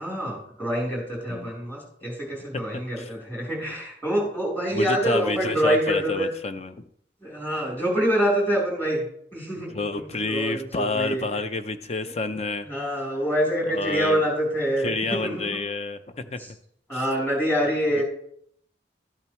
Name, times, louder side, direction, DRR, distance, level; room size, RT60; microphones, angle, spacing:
voice 1, 0.0-6.3 7.2-9.0 9.3-11.3 12.3-12.4 12.6-15.6 16.4-16.5 16.9-18.0, equal, 10° left, -4 dB, 3.6 m, -26 dB
voice 2, 4.7-6.8 9.6-12.7 13.7-14.2 14.8-16.6 16.9-17.0 18.0-18.1, left 3 dB, 35° left, 10 dB, 0.6 m, -29 dB
12.5 x 8.8 x 3.1 m, 0.69 s
head